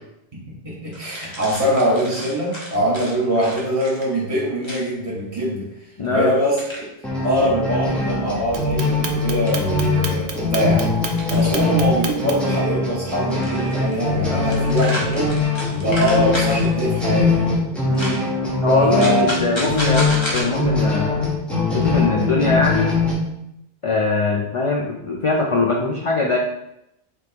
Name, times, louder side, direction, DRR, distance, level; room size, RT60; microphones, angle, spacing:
voice 1, 0.3-5.7 6.1-6.9 7.2-15.4 15.7-17.6 18.6-19.4, equal, 30° right, -5 dB, 1.4 m, -23 dB
sound 1, 0.9-4.1 4.6-4.8 6.6-6.9 8.3-8.4 9.5-9.6 11.2-11.7 13.2-14.1 14.3-16.7 17.9-18.2 19.0-20.4, equal, 25° left, 1.0 m, -31 dB
voice 2, 6.0-6.3 14.3-14.5 17.9-18.2 18.6-21.3 21.7-23.0 23.8-26.4, left 3 dB, 50° left, -1 dB, 0.4 m, -21 dB
sound 2, 7.0-23.1, left 3 dB, ahead, 0.9 m, -22 dB
Clock, 8.5-12.6, right 6 dB, 85° right, 0.9 m, -30 dB
5.1 x 3.3 x 2.9 m, 0.82 s
omnidirectional pair, 1.1 m